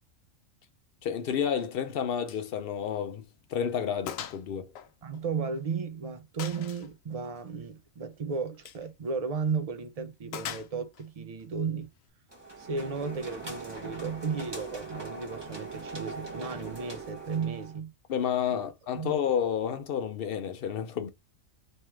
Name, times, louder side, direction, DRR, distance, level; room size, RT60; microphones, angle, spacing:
voice 1, 1.0-3.2 3.5-4.7 18.1-21.1, left 8 dB, 60° left, 0.6 m, -30 dB
Gunshot gunfire, 2.3-2.5 2.8-2.9 3.4-3.5 4.1-4.4 4.8-5.7 6.4-6.9 8.5-8.9 10.3-11.1, left 9 dB, 90° left, 1.0 m, -40 dB
voice 2, 5.0-11.9 12.6-17.9 18.5-18.6 18.9-19.1, right 5 dB, 45° right, 0.5 m, -34 dB
sound 1, 12.3-17.8, right 3 dB, 20° right, 1.1 m, -41 dB
3.3 x 3.1 x 3.4 m
omnidirectional pair, 1.4 m